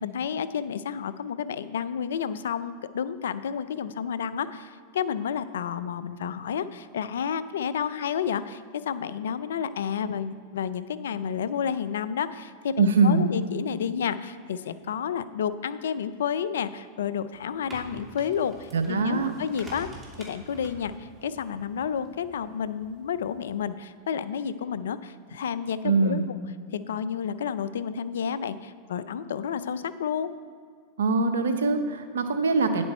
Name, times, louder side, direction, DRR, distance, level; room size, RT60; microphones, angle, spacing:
voice 1, 0.0-19.9 20.2-26.4 26.9-30.3, left 7 dB, 80° left, 14 dB, 0.5 m, -31 dB
voice 2, 12.8-13.3 18.7-19.3 25.8-26.3 31.0-32.8, right 3 dB, 85° right, 8 dB, 0.9 m, -23 dB
sound 1, 17.3-23.5, right 2 dB, 20° right, 2.4 m, -48 dB
9.9 x 7.6 x 4.3 m, 2.1 s
hypercardioid pair, 105°, 0 cm